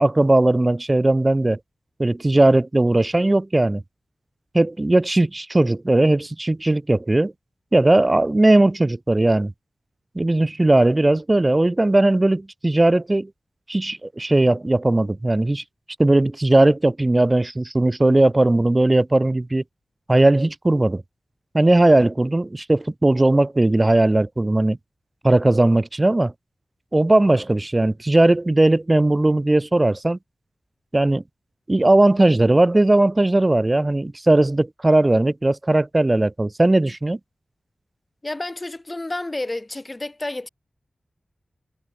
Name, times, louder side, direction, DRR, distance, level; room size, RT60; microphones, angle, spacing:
voice 1, 0.0-1.6 2.0-3.8 4.5-7.3 7.7-9.5 10.1-13.3 13.7-15.6 16.0-19.6 20.1-21.0 21.5-24.8 25.2-26.3 26.9-30.2 30.9-31.2 31.7-37.2, right 2 dB, 25° right, 1.4 m, -18 dB
voice 2, 38.2-40.5, left 2 dB, 25° left, 5.1 m, -30 dB
wide cardioid pair, 110°, 0 cm